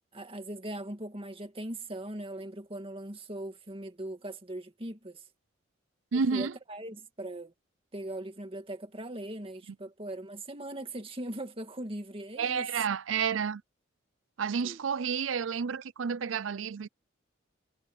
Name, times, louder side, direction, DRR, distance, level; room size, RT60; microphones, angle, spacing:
voice 1, 0.1-5.2 6.1-7.5 7.9-12.7 14.6-14.8, right 1 dB, 30° right, 2.1 m, -40 dB
voice 2, 6.1-6.5 12.4-13.6 14.4-16.9, right 6 dB, 85° right, 0.5 m, -30 dB
head